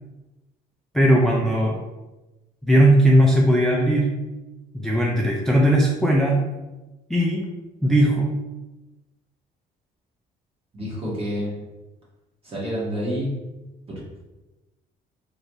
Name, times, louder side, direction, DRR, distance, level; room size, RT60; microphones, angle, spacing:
voice 1, 0.9-1.8 2.6-4.1 4.7-6.4 7.1-7.5 7.8-8.3, right 1 dB, 5° left, -3 dB, 0.4 m, -18 dB
voice 2, 10.7-11.6 12.4-13.3 13.9-14.0, equal, 35° right, -6 dB, 1.4 m, -28 dB
3.2 x 2.6 x 3.0 m, 1.1 s
cardioid pair, 110°, 17 cm